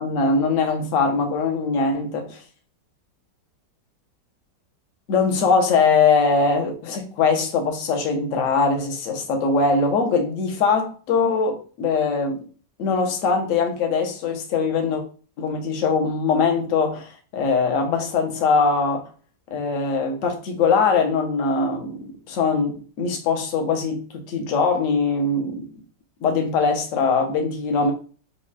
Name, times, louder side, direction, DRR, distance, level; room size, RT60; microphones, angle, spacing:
voice 1, 0.0-2.4 5.1-12.4 12.8-15.0 15.4-19.1 19.5-22.7 23.0-25.7 26.2-27.9, left 4 dB, 55° left, 1.1 m, -21 dB
4.9 x 2.3 x 4.1 m
omnidirectional pair, 2.0 m